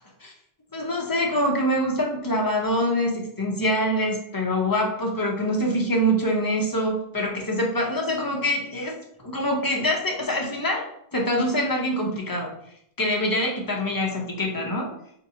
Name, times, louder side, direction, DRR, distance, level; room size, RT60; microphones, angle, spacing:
voice 1, 0.7-8.9 9.2-10.9 11.1-12.5 13.0-14.9, equal, 25° left, -1 dB, 0.5 m, -25 dB
4.2 x 2.6 x 2.7 m, 0.70 s
omnidirectional pair, 1.2 m